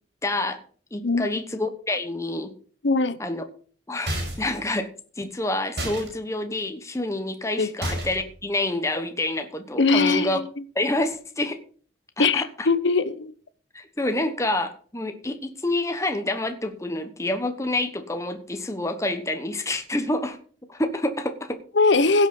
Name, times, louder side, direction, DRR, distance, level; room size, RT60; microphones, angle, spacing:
voice 1, 0.2-0.6 0.9-2.5 3.2-3.4 3.9-4.9 5.2-10.4 10.7-11.6 12.2-12.7 13.7-20.4 20.7-21.6, left 2 dB, 15° left, 1.2 m, -28 dB
voice 2, 2.8-3.2 7.6-7.7 9.8-10.5 12.2-13.3 21.7-22.3, left 3 dB, 80° left, 0.9 m, -21 dB
sound 1, 4.1-4.6 5.8-6.1 7.8-8.3, right 1 dB, 65° right, 5.5 m, -30 dB
16.5 x 6.3 x 5.4 m
head